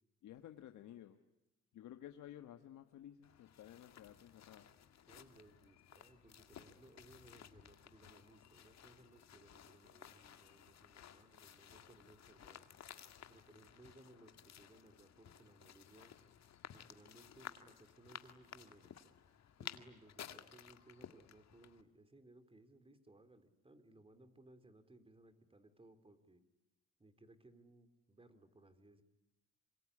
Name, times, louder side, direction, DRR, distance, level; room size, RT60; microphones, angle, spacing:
voice 1, 0.2-1.2 1.7-4.7, left 11 dB, 75° left, 7 dB, 1.5 m, -54 dB
sound 1, 3.2-21.8, left 9 dB, 60° left, 2.0 m, -56 dB
voice 2, 5.1-12.6 13.3-16.1 16.7-18.9 19.6-26.4 27.0-29.0, right 2 dB, 20° right, 9 dB, 3.5 m, -63 dB
26.5 x 23.0 x 9.8 m, 0.92 s
cardioid pair, 90°, 30 cm